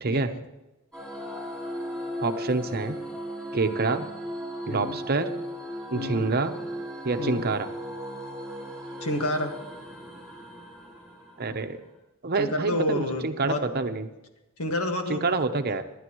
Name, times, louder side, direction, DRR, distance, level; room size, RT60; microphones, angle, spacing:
voice 1, 0.1-0.4 4.7-5.0 5.9-6.3 7.2-7.4 9.0-9.5 12.4-13.6 14.6-15.2 15.7-15.8, left 1 dB, 80° left, 4 dB, 1.7 m, -29 dB
sound 1, 0.9-11.8, equal, 5° left, 5.1 m, -37 dB
voice 2, 2.2-3.0 3.5-4.1 4.7-5.3 5.9-6.5 7.0-7.7 11.4-11.8 12.2-14.1 15.1-15.8, right 3 dB, 45° right, 8 dB, 0.9 m, -27 dB
25.5 x 11.0 x 3.1 m, 1.0 s
head